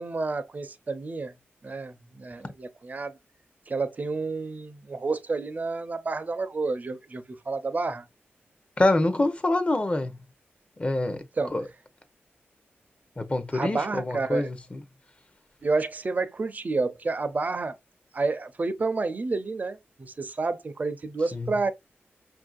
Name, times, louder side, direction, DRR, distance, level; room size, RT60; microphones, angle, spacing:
voice 1, 0.0-1.3 1.6-3.2 3.7-8.1 11.4-11.5 13.5-14.5 15.6-17.8 18.1-21.7, right 3 dB, 40° right, 0.6 m, -30 dB
voice 2, 8.8-10.1 10.8-11.2 11.5-11.6 13.2-14.8 21.3-21.5, left 2 dB, 25° left, 0.8 m, -25 dB
5.4 x 2.6 x 2.4 m
wide cardioid pair, 80°, 4 cm